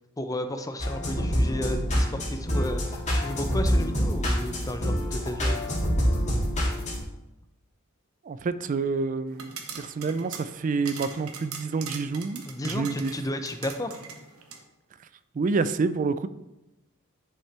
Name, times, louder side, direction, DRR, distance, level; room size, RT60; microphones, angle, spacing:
voice 1, 0.2-5.6 12.5-14.0, left 1 dB, 15° left, 8 dB, 0.6 m, -33 dB
sound 1, 0.8-7.0, equal, 35° left, 2.1 m, -26 dB
voice 2, 8.2-13.1 15.3-16.3, right 4 dB, 35° right, 14 dB, 0.3 m, -28 dB
sound 2, 9.3-14.6, right 5 dB, 85° right, 1.0 m, -41 dB
10.0 x 5.7 x 3.4 m, 0.96 s
head